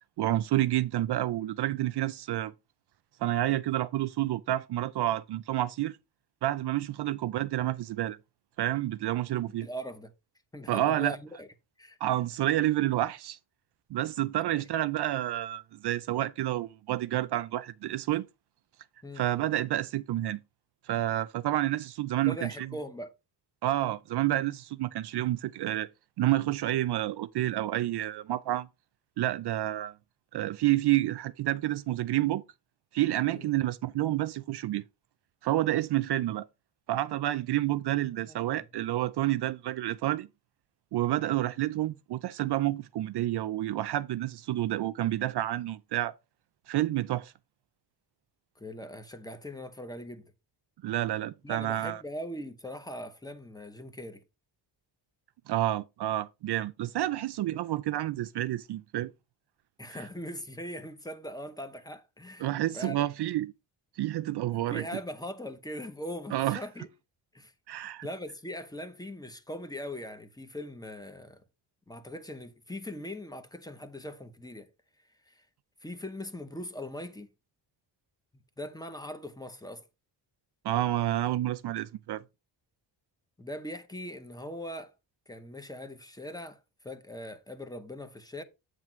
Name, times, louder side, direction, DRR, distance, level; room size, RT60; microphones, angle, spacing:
voice 1, 0.2-2.5 3.2-6.0 6.4-8.2 8.6-9.7 10.7-11.2 12.0-13.4 13.9-18.3 19.2-20.4 20.9-22.7 23.6-25.9 26.2-28.7 29.2-29.9 30.3-32.4 32.9-34.8 35.4-36.5 36.9-40.3 40.9-46.1 46.7-47.3 50.8-52.0 55.5-59.1 59.9-60.0 62.4-63.5 64.0-64.8 66.3-66.6 67.7-68.1 80.6-82.2, right 14 dB, 60° right, 0.5 m, -29 dB
voice 2, 9.6-10.1 10.5-11.5 11.8-12.0 14.5-14.7 19.0-19.2 22.2-23.1 33.3-33.5 38.3-38.7 48.6-50.3 51.4-54.2 59.8-62.5 62.7-63.0 64.7-66.9 67.3-67.5 68.0-71.4 71.9-74.7 75.3-75.4 75.8-77.3 78.6-79.8 83.4-84.9 85.3-86.6 86.8-88.4, left 1 dB, 10° left, 0.8 m, -40 dB
9.0 x 3.2 x 6.0 m
wide cardioid pair, 160°, 46 cm